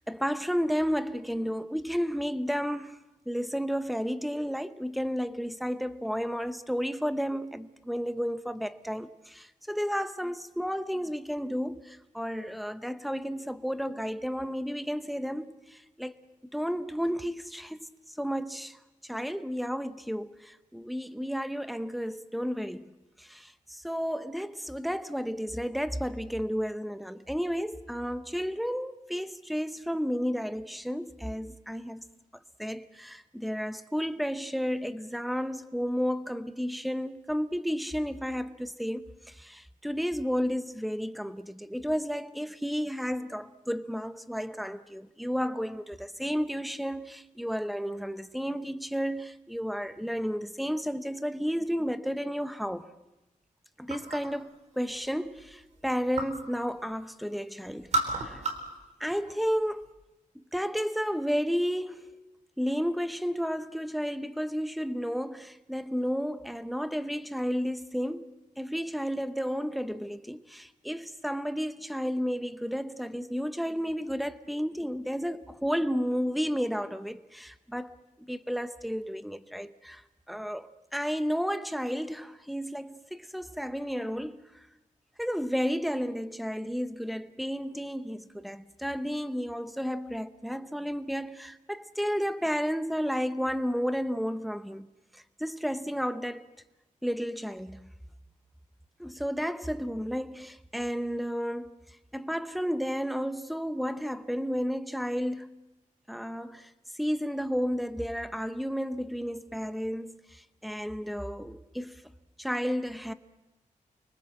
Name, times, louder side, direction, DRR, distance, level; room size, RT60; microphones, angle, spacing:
voice 1, 0.1-3.0 3.3-16.1 16.5-22.9 23.2-32.0 32.6-52.9 53.8-58.4 59.0-60.0 60.3-78.0 78.3-80.0 80.3-84.4 85.2-96.5 97.0-97.9 99.0-101.8 102.1-105.5 106.1-112.0 112.4-113.1, equal, ahead, 0.8 m, -32 dB
sound 1, 53.9-54.4 54.8-56.5 56.8-57.4 57.7-58.8 59.1-59.9, right 2 dB, 60° right, 3.8 m, -33 dB
29.5 x 23.5 x 7.7 m
wide cardioid pair, 175°, 14 cm